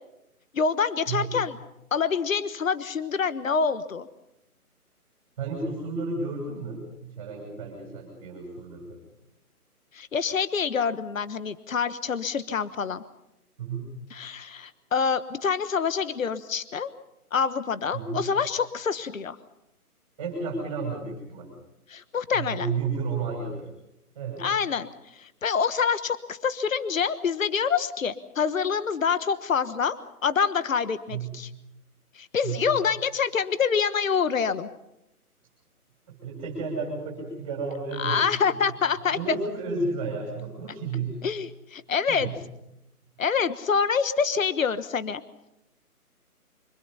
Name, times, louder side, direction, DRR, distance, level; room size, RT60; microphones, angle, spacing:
voice 1, 0.5-1.6 1.9-4.1 9.9-13.0 14.1-16.9 17.3-19.4 21.9-22.7 24.4-24.9 25.1-29.9 30.2-31.5 32.1-34.7 38.0-39.2 41.2-42.3 43.2-45.2, left 6 dB, 60° left, 13 dB, 1.3 m, -26 dB
voice 2, 1.1-1.4 5.4-9.0 13.6-14.0 17.9-18.3 20.2-21.5 22.3-23.7 24.1-24.5 31.1-31.4 32.4-32.7 36.1-38.5 39.1-41.3 42.1-42.4, right 4 dB, 20° right, -1 dB, 6.2 m, -32 dB
25.5 x 25.5 x 5.6 m, 0.86 s
hypercardioid pair, 170°, 45 cm